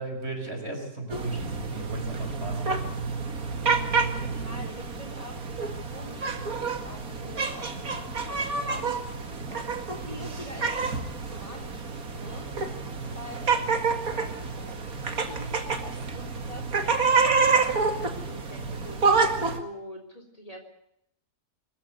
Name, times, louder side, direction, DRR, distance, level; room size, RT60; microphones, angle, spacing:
voice 1, 0.0-2.8, right 2 dB, 40° right, 3 dB, 6.3 m, -36 dB
sound 1, 1.1-19.6, right 4 dB, 70° right, 2.7 m, -28 dB
voice 2, 4.2-9.0 9.5-9.7 10.0-12.5 13.1-20.6, equal, 25° left, 5 dB, 3.6 m, -45 dB
25.5 x 14.5 x 8.1 m, 0.77 s
omnidirectional pair, 1.6 m